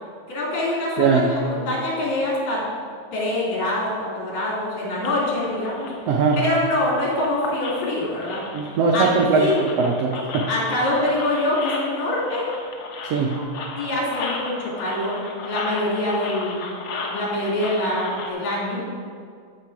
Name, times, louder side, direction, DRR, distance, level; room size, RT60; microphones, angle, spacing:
voice 1, 0.3-2.6 3.1-5.9 6.4-8.4 8.7-9.6 10.1-12.5 13.8-16.6 17.0-18.8, left 1 dB, 60° left, -5 dB, 4.0 m, -25 dB
voice 2, 1.0-1.3 6.1-6.4 8.5-9.5 9.8-10.5 13.1-13.5, right 5 dB, 80° right, 0 dB, 1.4 m, -20 dB
sound 1, 5.0-18.3, left 4 dB, 80° left, 1.1 m, -35 dB
13.5 x 6.3 x 4.7 m, 2.1 s
omnidirectional pair, 3.8 m